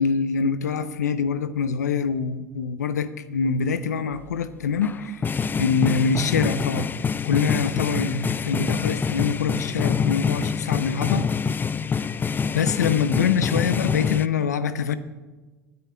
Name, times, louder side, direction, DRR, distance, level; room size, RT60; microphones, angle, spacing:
voice 1, 0.0-5.3 5.5-6.9 7.2-11.3 12.5-14.9, left 6 dB, 85° left, 14 dB, 0.6 m, -24 dB
sound 1, 4.8-14.3, left 6 dB, 20° left, 0.4 m, -26 dB
26.0 x 9.5 x 2.3 m, 1.2 s
hypercardioid pair, 75°, 9 cm